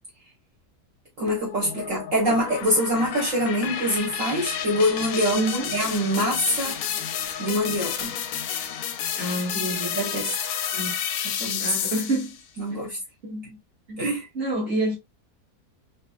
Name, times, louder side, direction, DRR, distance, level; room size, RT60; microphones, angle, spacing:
voice 1, 1.2-5.4 5.7-6.8 7.4-8.1 9.8-10.4 11.2-11.7 12.6-13.0 14.0-14.3, equal, 55° right, 1.2 m, -25 dB
sound 1, 1.3-12.4, left 9 dB, 70° left, 0.9 m, -31 dB
voice 2, 5.3-5.7 9.2-9.9 10.7-10.9 11.6-12.4 12.7-12.8 13.2-13.6 13.9-14.1 14.3-14.9, right 1 dB, 35° right, 2.0 m, -28 dB
4.3 x 2.6 x 2.3 m
omnidirectional pair, 1.8 m